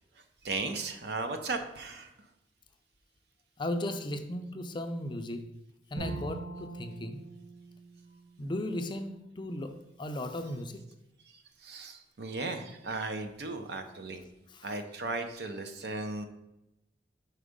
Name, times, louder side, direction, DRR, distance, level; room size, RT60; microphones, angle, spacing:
voice 1, 0.4-2.1 11.6-14.2 14.6-16.3, right 3 dB, 65° right, 0.7 m, -36 dB
voice 2, 3.6-5.5 5.9-7.2 8.4-10.8 14.5-14.7, left 1 dB, 25° left, 0.4 m, -36 dB
Bowed string instrument, 6.0-9.1, right 2 dB, 50° right, 2.4 m, -42 dB
4.9 x 4.4 x 5.1 m
head